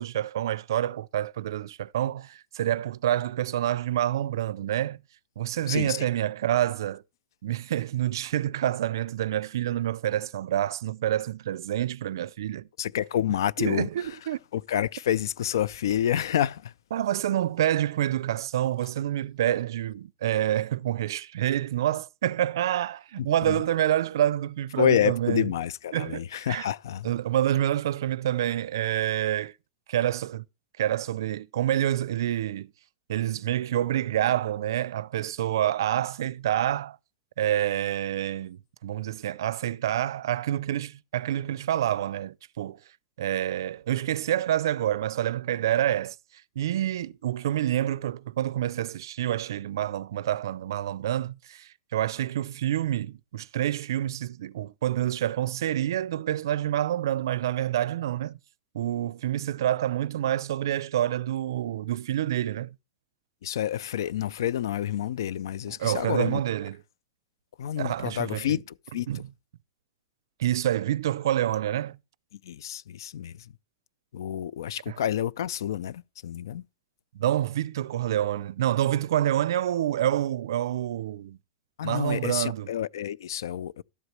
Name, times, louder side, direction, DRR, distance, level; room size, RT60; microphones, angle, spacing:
voice 1, 0.0-5.0 5.4-7.0 7.4-12.7 13.6-14.4 16.9-25.5 25.9-26.7 27.0-29.5 29.9-30.4 30.8-32.7 33.1-37.0 37.4-42.8 43.2-58.4 58.7-62.8 65.7-66.8 67.8-68.6 69.1-69.3 70.4-72.0 74.9-75.0 77.1-81.4 81.8-82.7, right 12 dB, 75° right, 0.4 m, -27 dB
voice 2, 5.7-6.1 12.8-13.9 14.5-16.7 23.5-23.6 24.8-27.1 63.4-66.4 67.6-68.6 68.9-69.1 72.4-73.5 74.1-76.6 81.8-83.8, left 10 dB, 75° left, 0.4 m, -28 dB
12.5 x 8.0 x 3.2 m
supercardioid pair, 165°, 2 cm